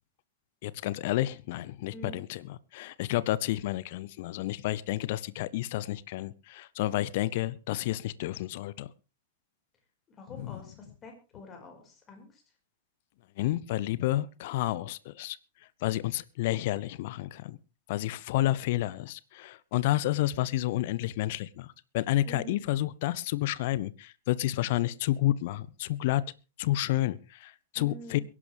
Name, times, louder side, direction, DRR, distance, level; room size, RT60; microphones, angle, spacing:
voice 1, 0.6-8.9 10.4-10.6 13.4-15.4 15.8-17.6 17.9-26.2 26.6-28.2, left 15 dB, 50° left, 0.7 m, -30 dB
voice 2, 10.1-12.4 22.2-22.6 27.7-28.2, equal, 25° left, 5.1 m, -46 dB
23.0 x 11.0 x 3.4 m
figure-of-eight pair, 95°, 0 cm